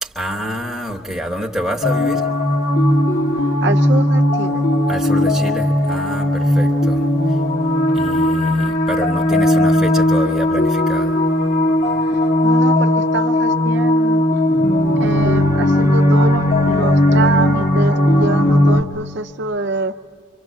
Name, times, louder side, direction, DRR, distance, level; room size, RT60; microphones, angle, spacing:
voice 1, 0.0-2.3 4.9-7.4 7.9-11.2, equal, ahead, 1.1 m, -27 dB
sound 1, 1.8-18.8, left 1 dB, 35° left, 1.0 m, -16 dB
voice 2, 3.6-4.7 12.0-14.2 15.0-19.9, right 3 dB, 55° right, 0.6 m, -25 dB
25.5 x 24.5 x 7.5 m
head